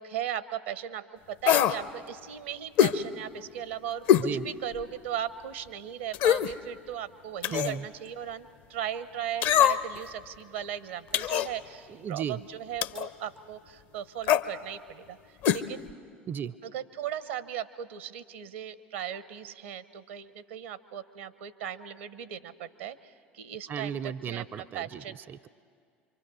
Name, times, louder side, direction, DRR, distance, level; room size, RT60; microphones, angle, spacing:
voice 1, 0.0-4.0 4.4-15.2 15.5-15.9 16.6-23.9 24.2-25.2, right 10 dB, 75° right, 16 dB, 0.8 m, -37 dB
sound 1, 1.4-1.8 2.8-3.0 4.1-4.3 4.8-4.9 6.1-6.5 7.4-7.8 9.4-10.0 11.1-11.5 12.8-13.1 14.2-14.5 15.4-15.6 15.9-16.0, left 10 dB, 60° left, 0.7 m, -23 dB
voice 2, 4.2-4.5 7.5-7.9 11.9-12.4 16.3-16.6 23.7-25.5, right 8 dB, 35° right, 18 dB, 0.5 m, -35 dB
26.5 x 24.5 x 6.3 m, 2.2 s
figure-of-eight pair, 65°, 6 cm